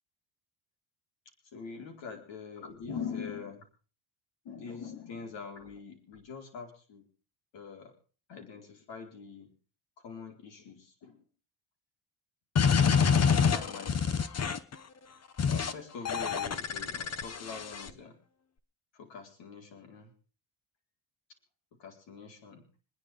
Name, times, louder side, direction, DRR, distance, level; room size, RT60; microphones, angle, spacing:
voice 1, 1.4-3.7 4.4-7.1 7.5-7.9 8.3-9.5 10.0-11.2 12.6-14.3 15.5-18.2 18.9-20.1 21.8-22.7, left 6 dB, 60° left, 3 dB, 4.4 m, -44 dB
sound 1, 12.6-14.7 15.4-15.7 16.1-17.9, left 6 dB, 30° left, 1.0 m, -27 dB
26.5 x 10.5 x 3.6 m, 0.38 s
cardioid pair, 125°, 50 cm